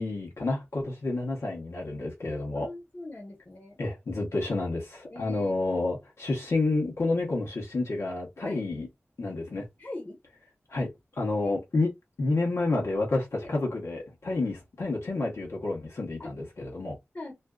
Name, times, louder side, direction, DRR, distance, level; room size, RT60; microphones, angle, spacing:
voice 1, 0.0-2.7 3.8-8.9 9.2-9.7 10.7-10.9 11.2-11.9 12.2-17.0, left 2 dB, 80° left, 0.9 m, -29 dB
voice 2, 2.5-3.8 5.1-5.6 8.4-8.6 9.8-10.2 11.4-11.5 13.4-13.5 16.2-16.3 17.1-17.3, left 2 dB, 45° left, 0.9 m, -41 dB
2.5 x 2.3 x 2.2 m
cardioid pair, 40°, 5 cm